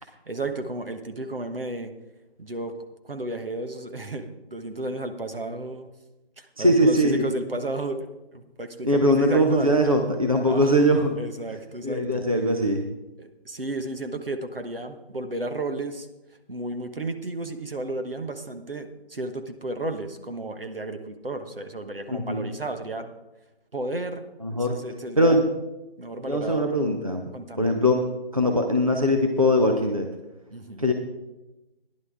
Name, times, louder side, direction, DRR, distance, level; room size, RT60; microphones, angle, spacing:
voice 1, 0.0-1.9 2.4-2.8 3.0-5.9 6.4-9.9 10.5-10.7 11.2-12.2 13.2-16.1 16.5-23.1 23.7-25.5 26.0-26.7 27.3-27.8 30.5-30.9, right 2 dB, 60° right, 7 dB, 1.2 m, -33 dB
voice 2, 6.6-7.3 8.8-11.2 11.8-12.8 22.1-22.5 24.4-24.8 25.2-25.5 26.3-27.2 27.6-28.1 28.3-30.1 30.8-30.9, equal, 35° right, 3 dB, 0.7 m, -21 dB
14.5 x 10.5 x 3.6 m, 1.0 s
figure-of-eight pair, 180°, 31 cm